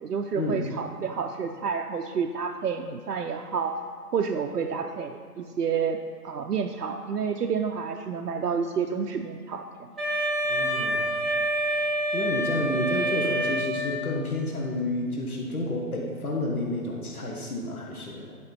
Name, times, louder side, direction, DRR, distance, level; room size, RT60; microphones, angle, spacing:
voice 1, 0.0-3.7 4.1-6.0 6.2-9.9, right 6 dB, 70° right, 3 dB, 0.7 m, -29 dB
Wind instrument woodwind instrument, 10.0-14.2, right 1 dB, ahead, 0.5 m, -27 dB
voice 2, 10.4-11.1 12.1-18.4, left 1 dB, 60° left, -1 dB, 1.5 m, -30 dB
11.0 x 5.3 x 4.4 m, 2.1 s
hypercardioid pair, 170°, 48 cm